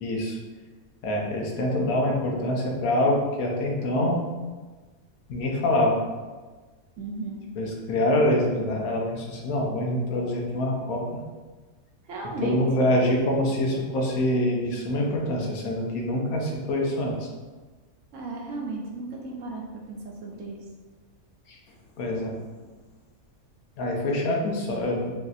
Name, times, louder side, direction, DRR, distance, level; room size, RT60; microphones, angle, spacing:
voice 1, 0.0-0.4 1.0-4.2 5.3-6.0 7.6-11.2 12.4-17.3 21.5-21.6 22.0-22.4 23.8-25.1, left 1 dB, 85° left, 0 dB, 1.1 m, -25 dB
voice 2, 7.0-7.4 12.0-12.6 18.1-20.6, right 3 dB, 70° right, -1 dB, 0.9 m, -35 dB
3.9 x 2.7 x 2.4 m, 1.3 s
omnidirectional pair, 1.5 m